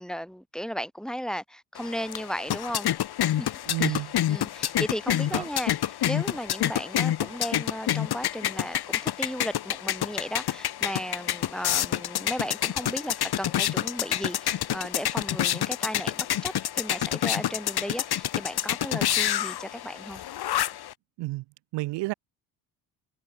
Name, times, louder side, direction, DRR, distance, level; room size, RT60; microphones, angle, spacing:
voice 1, 0.0-2.9 3.4-3.5 3.8-20.2, equal, ahead, 5.1 m, -35 dB
sound 1, 1.8-20.9, left 12 dB, 60° left, 4.4 m, -28 dB
voice 2, 3.7-4.1 5.3-5.4 21.2-21.4 21.7-22.1, right 20 dB, 75° right, 1.7 m, -30 dB
supercardioid pair, 70°, 42 cm